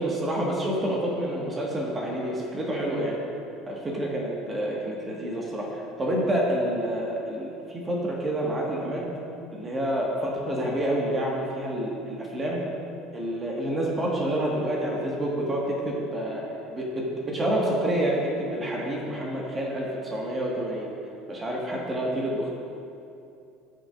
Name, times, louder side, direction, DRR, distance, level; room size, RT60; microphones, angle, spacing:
voice 1, 0.0-3.2 3.7-9.1 9.5-12.6 13.1-16.4 16.7-20.9 21.3-22.5, right 1 dB, 25° right, -2 dB, 1.7 m, -28 dB
14.5 x 6.6 x 2.6 m, 2.7 s
figure-of-eight pair, 65°, 0 cm